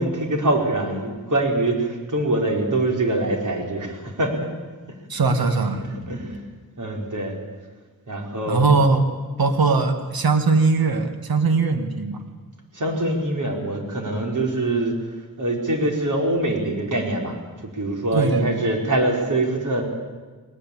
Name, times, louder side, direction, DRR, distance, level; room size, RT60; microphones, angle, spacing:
voice 1, 0.0-4.5 5.8-6.4 6.8-7.4 8.1-8.7 12.7-14.9 15.4-17.4 17.6-19.8, right 2 dB, 60° right, 1 dB, 5.0 m, -24 dB
voice 2, 5.1-5.8 8.5-9.0 9.4-12.2 18.1-18.7, right 4 dB, 85° right, 7 dB, 2.0 m, -20 dB
20.5 x 19.5 x 8.7 m, 1.4 s
cardioid pair, 70°, 35 cm